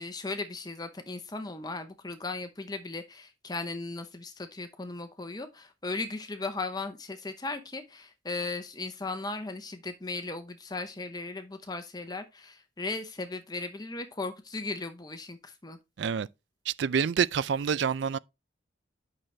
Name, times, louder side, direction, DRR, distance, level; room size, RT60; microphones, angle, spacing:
voice 1, 0.0-15.8, left 3 dB, 20° left, 0.8 m, -37 dB
voice 2, 16.7-18.2, right 7 dB, 65° right, 0.4 m, -27 dB
8.8 x 6.1 x 3.2 m
head